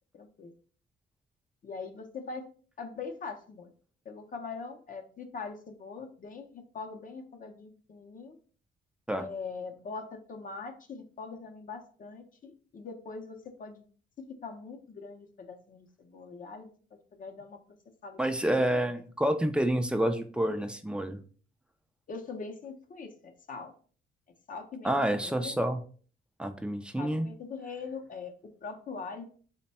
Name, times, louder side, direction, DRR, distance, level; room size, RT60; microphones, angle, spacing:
voice 1, 0.1-0.5 1.6-2.4 2.8-3.7 4.0-8.4 9.1-13.8 14.4-17.6 18.0-18.3 18.6-18.9 22.1-23.7 24.5-25.6 27.0-28.3 28.6-29.2, left 4 dB, 45° left, 4 dB, 0.6 m, -42 dB
voice 2, 18.2-21.2 24.8-25.8 26.4-27.3, right 1 dB, 5° right, 7 dB, 0.4 m, -28 dB
3.2 x 2.1 x 4.1 m, 0.43 s
cardioid pair, 90°, 20 cm